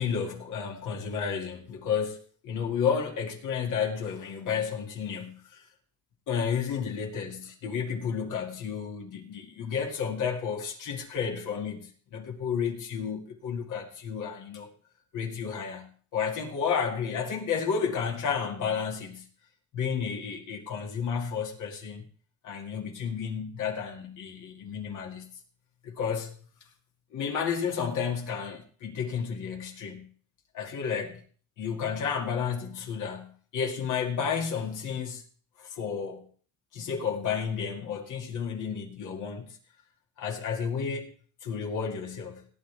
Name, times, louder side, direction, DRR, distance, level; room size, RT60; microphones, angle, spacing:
voice 1, 0.0-5.7 6.3-14.7 15.1-19.3 19.7-22.1 22.4-25.3 25.8-26.4 27.1-30.1 30.5-31.2 31.6-35.2 35.6-36.3 36.7-39.6 40.2-41.1 41.4-42.5, left 6 dB, 85° left, 2 dB, 2.3 m, -32 dB
17.5 x 9.3 x 3.4 m, 0.43 s
cardioid pair, 90°, 30 cm